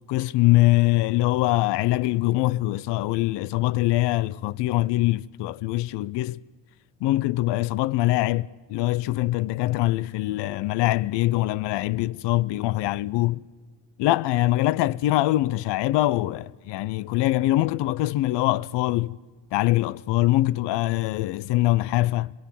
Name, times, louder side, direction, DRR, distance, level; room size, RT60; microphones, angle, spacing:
voice 1, 0.1-6.4 7.0-13.4 14.0-19.2 19.5-22.3, left 17 dB, 85° left, 0.6 m, -23 dB
27.5 x 20.5 x 7.5 m
cardioid pair, 75°, 40 cm